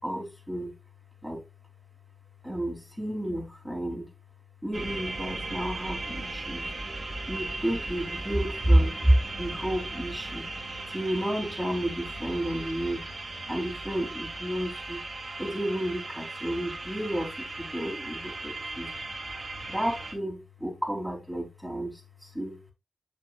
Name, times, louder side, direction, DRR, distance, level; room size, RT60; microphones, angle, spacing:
voice 1, 0.0-0.7 1.2-1.4 2.4-4.1 4.6-6.7 7.3-10.5 10.9-13.1 13.5-15.0 15.4-18.9 19.7-22.6, right 1 dB, ahead, 3.0 m, -30 dB
sound 1, 4.7-20.1, right 2 dB, 55° right, 2.5 m, -37 dB
7.7 x 6.8 x 2.3 m
cardioid pair, 60°, 0 cm